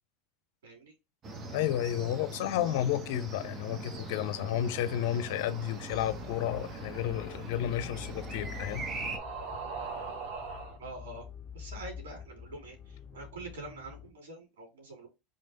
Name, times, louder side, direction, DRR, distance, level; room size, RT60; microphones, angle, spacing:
voice 1, 0.6-0.9 10.8-11.3 11.5-15.1, right 2 dB, 80° right, 2.7 m, -45 dB
sound 1, 1.2-9.2, right 3 dB, 35° right, 1.1 m, -41 dB
voice 2, 1.5-8.9, left 11 dB, 70° left, 0.5 m, -32 dB
sound 2, 4.1-10.8, right 4 dB, 60° right, 1.9 m, -44 dB
sound 3, 5.9-14.1, left 7 dB, 20° left, 0.8 m, -47 dB
3.8 x 3.3 x 4.0 m
hypercardioid pair, 100°, 0 cm